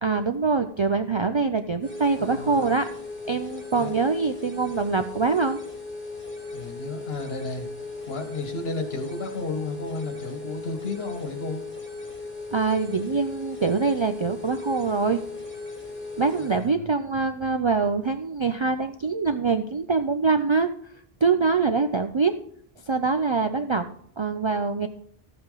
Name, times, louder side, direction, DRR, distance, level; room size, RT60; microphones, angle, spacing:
voice 1, 0.0-2.9 3.3-5.6 12.5-15.2 16.2-20.7 21.2-22.3 22.9-23.9 24.2-24.9, right 4 dB, 45° right, 8 dB, 0.3 m, -24 dB
sound 1, 1.8-16.7, left 3 dB, 10° left, 2.8 m, -37 dB
voice 2, 2.1-2.7 3.8-3.9 6.5-7.7 8.1-11.6 16.4-16.6, left 3 dB, 75° left, 5 dB, 1.6 m, -33 dB
13.0 x 8.0 x 3.9 m, 0.65 s
omnidirectional pair, 1.0 m